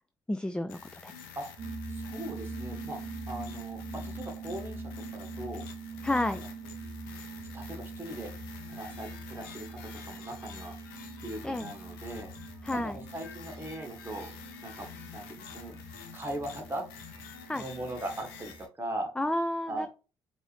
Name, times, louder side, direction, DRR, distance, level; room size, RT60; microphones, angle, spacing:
voice 1, 0.3-1.1 6.0-6.4 11.4-11.7 12.6-13.0 17.5-17.6 19.2-19.9, left 1 dB, 10° left, 10 dB, 0.3 m, -31 dB
sound 1, 0.7-18.7, left 7 dB, 90° left, 0.6 m, -48 dB
sound 2, 1.6-18.6, right 3 dB, 50° right, 0.6 m, -43 dB
voice 2, 1.9-3.0 3.3-4.8 5.1-5.6 6.1-6.5 7.5-8.3 8.7-10.8 11.2-12.3 12.7-14.3 14.6-15.8 16.1-16.9 17.5-19.1 19.7-19.9, right 1 dB, 20° right, 3 dB, 1.5 m, -39 dB
4.4 x 2.7 x 3.3 m, 0.33 s
hypercardioid pair, 55°, 12 cm